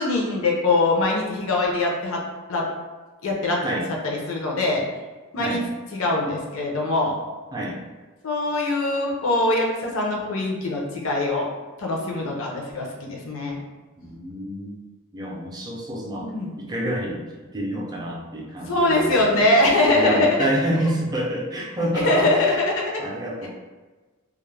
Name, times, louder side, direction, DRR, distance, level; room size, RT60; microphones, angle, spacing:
voice 1, 0.0-2.2 2.5-2.6 3.2-3.6 4.0-4.8 5.3-5.6 5.9-7.1 8.2-11.5 11.8-13.6 16.2-16.5 18.7-20.4 22.0-22.9, left 2 dB, 65° left, -1 dB, 0.5 m, -22 dB
voice 2, 14.0-14.8 15.1-16.3 16.6-17.3 17.5-19.4 19.9-23.5, right 1 dB, 20° right, -3 dB, 0.4 m, -28 dB
2.3 x 2.0 x 3.1 m, 1.3 s
head